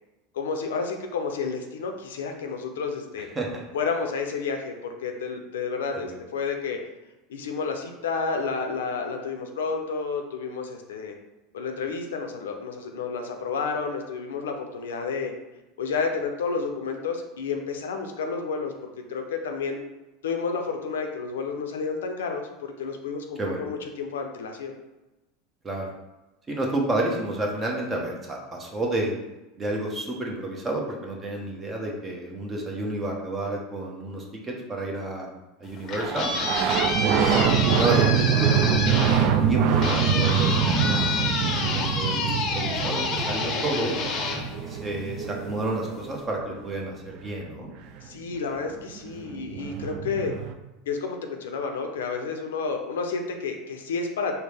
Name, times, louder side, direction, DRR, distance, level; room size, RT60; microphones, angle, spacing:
voice 1, 0.3-3.3 3.7-6.8 7.3-11.1 11.5-15.3 15.8-19.8 20.2-24.8 48.0-50.3 50.9-54.3, left 5 dB, 85° left, 4 dB, 0.5 m, -30 dB
voice 2, 3.4-3.7 5.9-6.2 23.4-23.6 25.6-25.9 26.5-29.1 29.6-35.3 35.6-36.3 37.0-43.9 44.7-47.7, right 2 dB, 25° right, 0 dB, 0.9 m, -30 dB
sound 1, 35.6-45.3, left 4 dB, 45° left, 0.6 m, -29 dB
sound 2, 36.0-46.4 48.5-48.6 48.7-50.5, right 7 dB, 60° right, 0.3 m, -25 dB
4.2 x 2.0 x 3.4 m, 1.0 s
hypercardioid pair, 105°, 0 cm